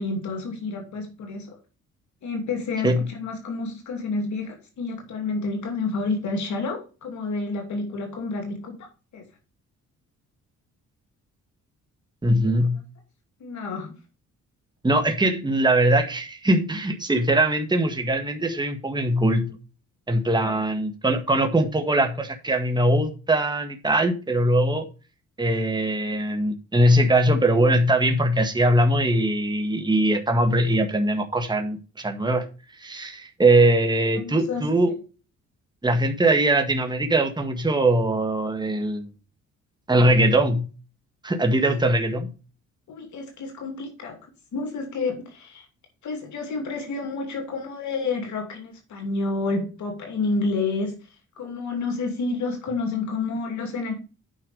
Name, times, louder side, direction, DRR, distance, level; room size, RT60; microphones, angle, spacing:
voice 1, 0.0-1.5 2.2-8.8 9.1-9.2 13.4-14.0 20.4-20.6 34.1-34.6 41.5-41.7 42.9-44.2 44.5-45.7 46.0-50.9 51.4-53.9, left 3 dB, 70° left, 2.7 m, -29 dB
voice 2, 12.2-12.8 14.8-19.5 20.1-24.9 25.4-32.5 32.8-34.9 35.8-39.1 39.9-40.7 41.2-42.3, right 1 dB, 15° right, 1.7 m, -21 dB
9.4 x 5.7 x 4.9 m
cardioid pair, 90°, 30 cm